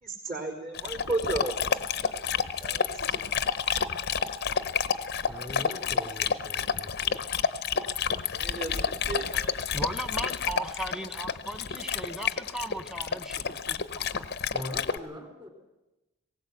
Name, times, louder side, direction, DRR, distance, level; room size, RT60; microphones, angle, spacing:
voice 1, 0.0-1.5 2.0-2.3 2.6-3.3 8.3-9.6, right 3 dB, 40° right, -8 dB, 4.1 m, -34 dB
Dog, 0.7-15.0, left 6 dB, 45° left, 0.7 m, -30 dB
voice 2, 5.3-7.2 14.5-15.5, left 1 dB, 20° right, 3 dB, 3.1 m, -41 dB
voice 3, 9.7-14.2, right 1 dB, 5° right, 8 dB, 1.1 m, -37 dB
20.0 x 18.0 x 8.0 m, 1.0 s
head